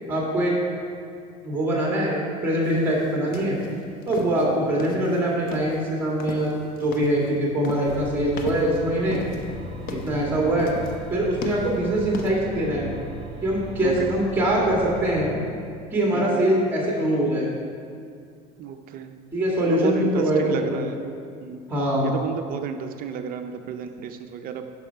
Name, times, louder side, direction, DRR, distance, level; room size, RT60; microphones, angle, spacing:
voice 1, 0.1-0.6 1.4-3.6 4.1-6.5 6.8-9.2 9.9-10.7 11.1-12.9 13.4-15.4 15.9-17.5 19.3-20.9 21.7-22.1, right 1 dB, 10° right, -3 dB, 1.9 m, -23 dB
sound 1, 2.6-12.3, left 3 dB, 45° left, 0.9 m, -38 dB
voice 2, 4.3-4.7 8.3-8.4 10.1-10.5 13.8-14.1 16.1-16.4 18.6-19.2 19.7-21.0 21.4-21.6 22.0-24.7, right 8 dB, 45° right, 7 dB, 0.5 m, -32 dB
sound 2, 7.8-15.3, right 2 dB, 30° right, 1.5 m, -38 dB
11.0 x 5.5 x 4.6 m, 2.3 s
supercardioid pair, 120°, 20 cm